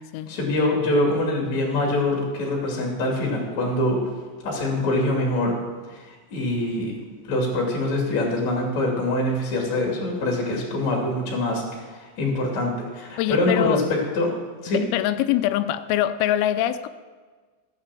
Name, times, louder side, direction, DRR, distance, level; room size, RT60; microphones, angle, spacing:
voice 1, 0.3-4.0 4.4-5.6 5.9-7.0 7.3-14.3 14.6-14.8, left 1 dB, 40° left, 0 dB, 3.1 m, -24 dB
voice 2, 13.2-13.9 14.7-16.9, left 12 dB, 90° left, 10 dB, 3.3 m, -23 dB
14.5 x 9.4 x 7.5 m, 1.4 s
omnidirectional pair, 5.9 m